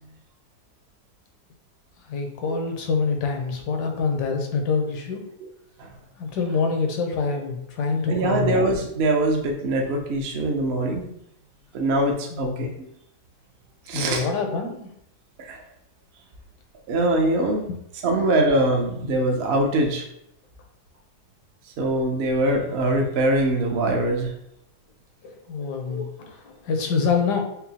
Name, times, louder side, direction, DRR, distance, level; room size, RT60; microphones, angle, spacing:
voice 1, 2.1-5.3 6.2-8.6 12.3-12.7 13.9-14.9 25.2-27.4, left 5 dB, 80° left, 3 dB, 1.2 m, -26 dB
voice 2, 8.1-11.1 11.7-12.7 13.9-14.2 15.5-15.6 16.9-17.6 18.0-20.0 21.8-24.3 25.9-26.0, right 1 dB, 65° right, 2 dB, 0.6 m, -22 dB
5.6 x 2.0 x 2.8 m, 0.76 s
omnidirectional pair, 1.8 m